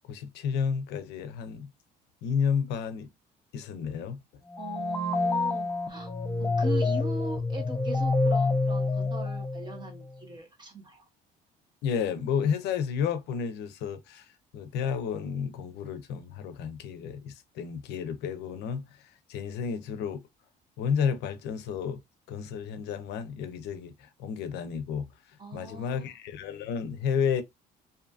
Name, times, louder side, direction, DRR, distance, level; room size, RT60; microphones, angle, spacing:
voice 1, 0.1-1.7 2.2-3.1 3.5-4.2 11.8-20.2 20.8-22.0 22.3-27.4, left 7 dB, 80° left, 0.5 m, -31 dB
sound 1, 4.5-10.0, left 3 dB, 15° left, 0.4 m, -27 dB
voice 2, 4.6-6.1 6.4-11.1 25.4-26.1, right 2 dB, 25° right, 1.1 m, -40 dB
2.6 x 2.4 x 2.3 m
cardioid pair, 110°, 17 cm